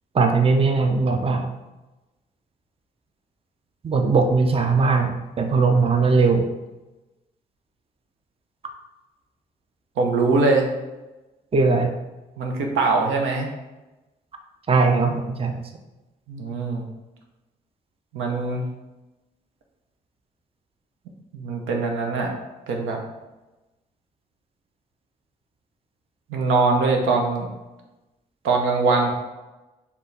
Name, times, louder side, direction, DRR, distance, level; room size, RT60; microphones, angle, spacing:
voice 1, 0.1-1.5 3.8-6.5 11.5-11.9 14.7-15.6, right 4 dB, 25° right, 5 dB, 0.6 m, -19 dB
voice 2, 10.0-10.7 12.4-13.5 16.3-16.8 18.1-18.6 21.3-22.3 22.7-23.0 26.3-27.5 28.4-29.1, right 3 dB, 70° right, 2 dB, 0.8 m, -22 dB
4.4 x 3.5 x 3.2 m, 1.1 s
hypercardioid pair, 45°, 21 cm